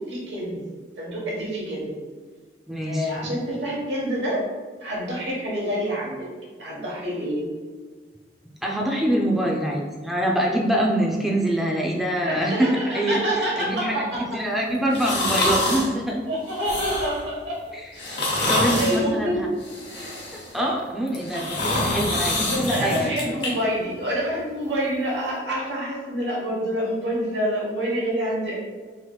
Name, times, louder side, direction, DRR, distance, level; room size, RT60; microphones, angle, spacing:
voice 1, 0.1-0.7 1.0-1.9 2.8-4.4 4.8-6.3 6.6-7.4 12.2-14.2 16.3-17.6 18.6-19.5 22.4-28.6, equal, 70° right, -3 dB, 1.0 m, -27 dB
voice 2, 2.7-3.1 8.6-16.2 17.7-17.8 18.5-19.5 20.3-23.1, right 1 dB, ahead, -2 dB, 0.3 m, -25 dB
sound 1, 14.9-15.9 16.5-17.2 17.9-19.0 19.6-20.5 21.1-23.5 23.9-24.0, left 1 dB, 75° left, 0.9 m, -26 dB
3.3 x 3.0 x 2.2 m, 1.5 s
head